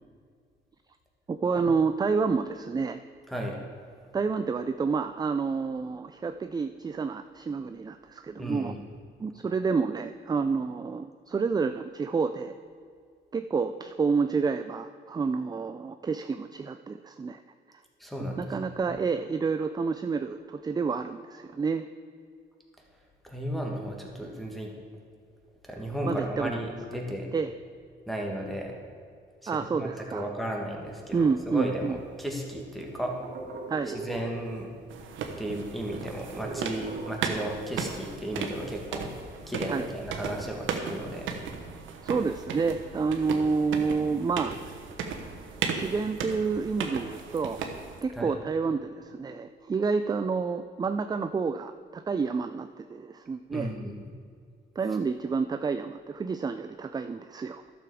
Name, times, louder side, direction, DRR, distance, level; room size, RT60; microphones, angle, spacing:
voice 1, 1.3-3.0 4.1-8.7 9.2-12.5 13.3-17.4 18.4-21.9 26.1-26.5 27.3-27.5 29.5-30.3 31.1-32.0 33.7-34.0 39.7-39.9 42.0-44.5 45.7-47.6 48.0-53.7 54.8-57.6, right 5 dB, 20° right, 9 dB, 0.3 m, -29 dB
voice 2, 3.3-3.6 8.4-8.8 18.0-18.9 23.2-24.7 25.6-27.3 28.1-28.7 29.4-33.1 33.9-34.7 35.4-39.1 39.5-41.3 48.1-48.3 53.5-54.0, right 1 dB, ahead, 0 dB, 1.9 m, -34 dB
sound 1, 30.9-32.0 32.3-34.9 35.2-35.3 35.5-38.0, right 3 dB, 60° right, 1.3 m, -42 dB
sound 2, 34.9-48.0, right 6 dB, 80° right, 1.1 m, -36 dB
12.0 x 6.9 x 4.9 m, 2.2 s
cardioid pair, 90°, 20 cm